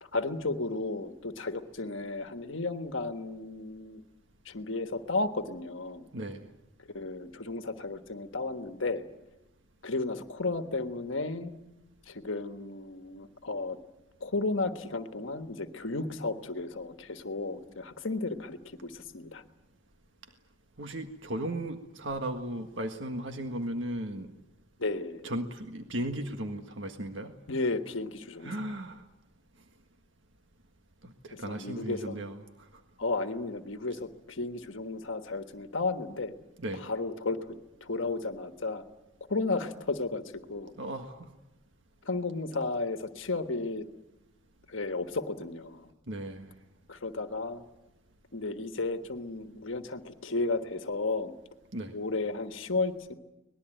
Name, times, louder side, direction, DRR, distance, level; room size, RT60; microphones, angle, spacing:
voice 1, 0.0-4.0 4.4-6.1 6.9-9.1 9.8-11.5 12.1-13.8 14.2-19.4 24.8-25.2 27.5-28.6 31.3-32.2 33.0-36.3 36.7-37.6 37.8-38.8 39.3-40.7 42.0-43.9 44.7-45.9 46.9-47.6 48.3-51.3 51.9-53.1, left 3 dB, 70° left, 8 dB, 1.4 m, -33 dB
voice 2, 6.1-6.5 20.8-24.3 25.2-27.3 28.4-29.0 31.0-32.7 36.6-36.9 40.8-41.3 46.1-46.5 51.7-52.0, right 1 dB, 65° right, 5 dB, 1.7 m, -36 dB
25.0 x 20.0 x 9.1 m, 0.97 s
head